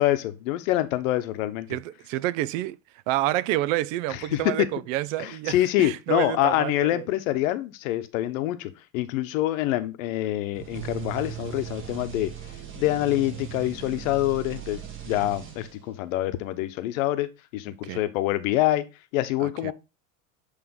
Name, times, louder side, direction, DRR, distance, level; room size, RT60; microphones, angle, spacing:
voice 1, 0.0-1.7 4.3-4.4 5.2-12.3 12.8-18.9 19.1-19.7, left 14 dB, 75° left, 0.9 m, -26 dB
voice 2, 1.7-2.8 3.1-7.1 17.8-18.0 19.4-19.7, right 15 dB, 70° right, 0.5 m, -28 dB
sound 1, 10.5-16.0, right 10 dB, 30° right, 1.4 m, -38 dB
7.9 x 3.3 x 3.6 m
supercardioid pair, 125°, 40 cm